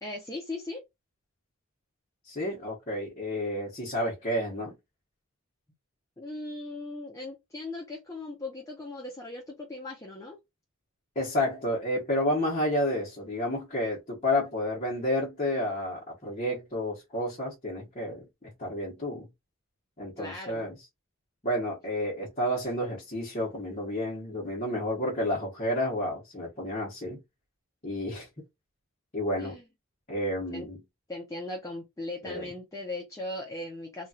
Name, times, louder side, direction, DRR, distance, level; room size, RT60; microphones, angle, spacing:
voice 1, 0.0-0.8 6.2-10.4 20.2-20.7 29.4-29.7 30.5-30.7 31.1-34.1, left 2 dB, 15° left, 0.6 m, -38 dB
voice 2, 2.2-4.7 11.1-19.3 20.0-20.7 21.4-27.2 27.8-28.3 29.1-29.6 30.1-30.8 32.2-32.5, left 1 dB, 35° left, 1.1 m, -30 dB
3.1 x 2.4 x 2.8 m
head